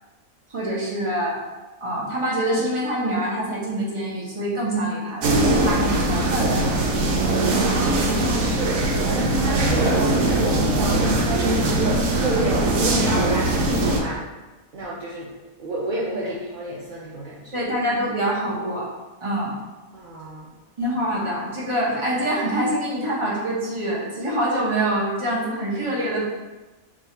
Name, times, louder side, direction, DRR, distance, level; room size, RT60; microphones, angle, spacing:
voice 1, 0.5-1.4 1.8-6.5 17.5-18.9 19.2-19.5 20.8-26.2, right 1 dB, 25° right, -5 dB, 0.9 m, -25 dB
sound 1, 5.2-14.0, right 2 dB, 75° right, 1.0 m, -21 dB
voice 2, 7.8-14.2 14.7-15.3 15.6-17.6 19.9-20.5, right 1 dB, 60° right, -6 dB, 0.5 m, -29 dB
3.7 x 2.4 x 4.2 m, 1.2 s
omnidirectional pair, 1.4 m